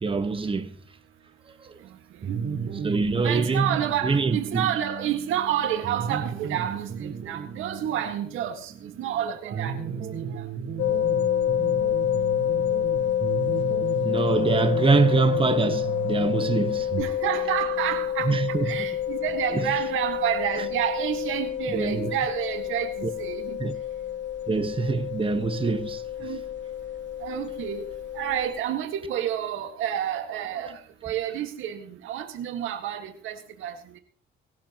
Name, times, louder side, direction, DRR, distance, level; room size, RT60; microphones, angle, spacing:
voice 1, 0.0-0.7 1.6-1.7 2.8-3.8 4.0-4.7 14.0-16.9 18.2-18.9 19.5-19.6 21.7-22.1 23.0-23.1 23.6-23.7 24.5-26.0, right 4 dB, 25° right, 1.4 m, -24 dB
sound 1, 2.2-17.0, right 6 dB, 55° right, 4.7 m, -35 dB
voice 2, 3.2-10.5 17.0-23.6 26.2-26.4 27.2-27.8 28.1-34.0, right 10 dB, 90° right, 1.9 m, -29 dB
sound 2, 10.8-28.6, left 10 dB, 65° left, 1.2 m, -28 dB
sound 3, 12.0-22.5 22.8-22.9, left 3 dB, 35° left, 7.6 m, -48 dB
24.0 x 13.0 x 3.1 m
cardioid pair, 90°, 20 cm